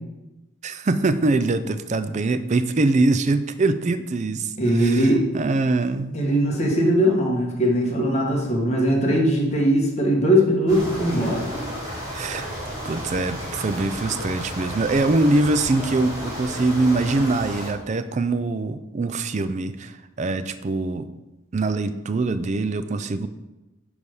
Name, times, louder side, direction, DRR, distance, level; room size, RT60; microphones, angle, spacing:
voice 1, 0.6-6.2 12.1-12.5 12.8-21.1 21.5-23.3, right 2 dB, 35° right, 11 dB, 0.4 m, -23 dB
voice 2, 4.6-5.2 6.1-11.5, equal, 30° left, -1 dB, 1.4 m, -20 dB
sound 1, 10.7-17.7, equal, 15° right, 2.2 m, -33 dB
9.5 x 3.4 x 5.4 m, 1.0 s
head